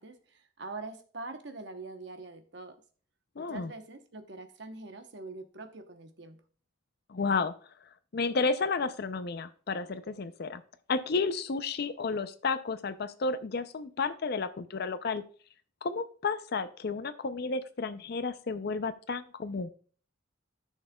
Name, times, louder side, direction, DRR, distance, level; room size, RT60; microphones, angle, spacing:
voice 1, 0.0-2.8 3.4-6.4, right 3 dB, 60° right, 6 dB, 0.9 m, -44 dB
voice 2, 3.4-3.7 7.1-7.5 8.1-10.6 10.9-15.2 15.8-19.7, left 4 dB, 50° left, 12 dB, 0.5 m, -32 dB
13.0 x 6.3 x 2.3 m, 0.43 s
head